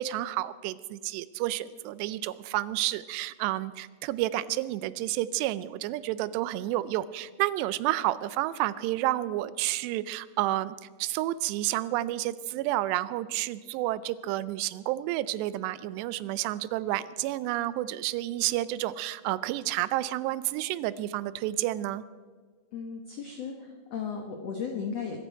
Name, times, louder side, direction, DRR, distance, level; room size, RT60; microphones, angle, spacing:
voice 1, 0.0-22.0, right 15 dB, 85° right, 17 dB, 2.7 m, -30 dB
voice 2, 22.7-25.2, left 6 dB, 85° left, 3 dB, 1.4 m, -35 dB
23.5 x 13.5 x 4.6 m, 1.5 s
omnidirectional pair, 4.9 m